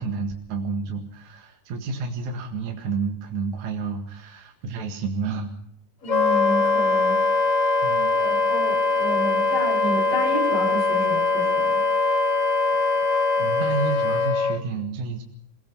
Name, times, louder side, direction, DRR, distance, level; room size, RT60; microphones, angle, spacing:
voice 1, 0.0-5.5 7.8-8.1 13.4-15.2, right 4 dB, 60° right, 2 dB, 3.2 m, -30 dB
voice 2, 6.0-7.3 8.2-11.8, equal, 75° left, 1 dB, 8.8 m, -30 dB
Wind instrument woodwind instrument, 6.1-14.6, left 3 dB, 60° left, 0.8 m, -22 dB
27.0 x 18.5 x 5.5 m, 0.70 s
omnidirectional pair, 3.8 m